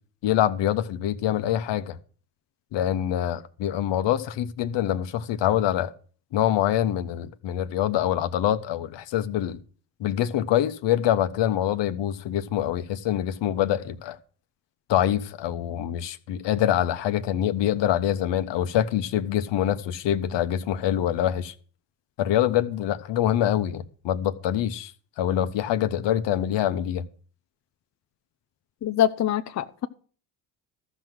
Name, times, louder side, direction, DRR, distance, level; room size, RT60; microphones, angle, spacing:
voice 1, 0.2-2.0 2.7-5.9 6.3-9.6 10.0-14.2 14.9-21.5 22.2-24.9 25.2-27.0, left 11 dB, 60° left, 1.2 m, -25 dB
voice 2, 28.8-29.9, left 10 dB, 35° left, 0.7 m, -24 dB
14.0 x 6.2 x 7.5 m
hypercardioid pair, 60°, 50 cm